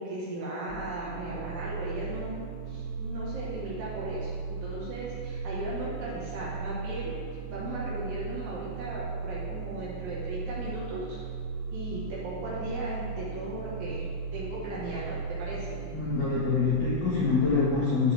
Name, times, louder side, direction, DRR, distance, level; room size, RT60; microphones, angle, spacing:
voice 1, 0.0-2.4 2.7-4.3 4.6-7.1 7.5-11.2 11.7-15.8, right 1 dB, 65° right, -6 dB, 3.3 m, -37 dB
sound 1, 0.7-17.5, right 5 dB, 85° right, 3.6 m, -37 dB
voice 2, 15.9-18.1, left 4 dB, 65° left, -7 dB, 1.9 m, -25 dB
13.5 x 5.3 x 3.5 m, 2.1 s
omnidirectional pair, 6.0 m